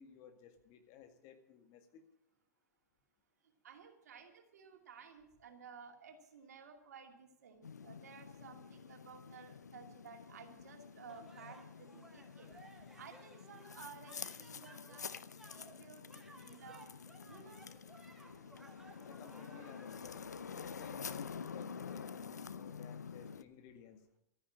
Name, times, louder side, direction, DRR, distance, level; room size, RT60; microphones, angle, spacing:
voice 1, 0.0-2.0 19.0-24.0, left 8 dB, 45° left, 7 dB, 2.0 m, -57 dB
voice 2, 3.6-12.5 13.0-15.1 15.4-16.9 17.2-17.7, right 6 dB, 75° right, 4 dB, 2.6 m, -55 dB
sound 1, 7.6-23.4, left 6 dB, 85° left, 0.7 m, -48 dB
sound 2, 11.1-20.0, right 2 dB, 5° right, 2.2 m, -60 dB
13.5 x 10.0 x 8.7 m, 0.79 s
hypercardioid pair, 105°, 9 cm